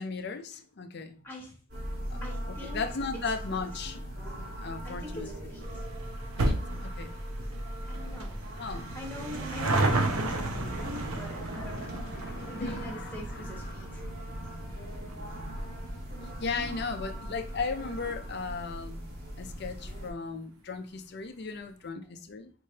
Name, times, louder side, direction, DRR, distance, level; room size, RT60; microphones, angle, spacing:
voice 1, 0.0-1.2 2.1-2.2 2.6-4.3 4.6-5.3 6.3-7.1 8.6-9.0 11.0-14.2 16.4-19.0 19.4-22.5, left 4 dB, 50° left, 7 dB, 0.5 m, -37 dB
voice 2, 1.2-1.5 2.2-2.8 3.5-3.6 4.8-5.8 7.9-8.4 8.9-12.0 12.4-14.0, left 1 dB, 10° left, -2 dB, 1.4 m, -44 dB
sound 1, 1.7-20.1, equal, 50° right, 1.5 m, -39 dB
sound 2, 5.6-18.4 18.7-18.8 19.6-19.7 19.9-20.0 20.3-20.4, right 2 dB, 90° right, 0.7 m, -34 dB
4.4 x 3.1 x 2.8 m, 0.40 s
head